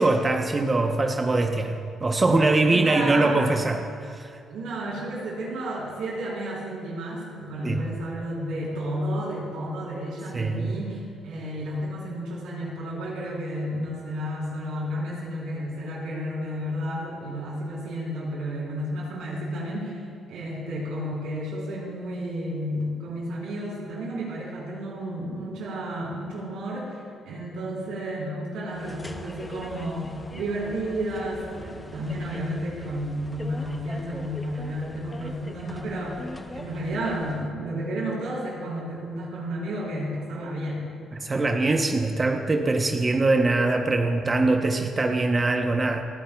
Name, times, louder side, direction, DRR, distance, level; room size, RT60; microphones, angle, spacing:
voice 1, 0.0-4.4 7.6-7.8 10.3-10.7 41.1-46.0, right 2 dB, 30° right, 4 dB, 0.8 m, -23 dB
voice 2, 2.7-3.5 4.5-20.0 20.3-40.8, equal, 90° right, -4 dB, 3.8 m, -32 dB
sound 1, 28.7-37.5, left 2 dB, 20° left, 0.8 m, -42 dB
29.0 x 9.9 x 2.3 m, 2.3 s
cardioid pair, 90°, 0 cm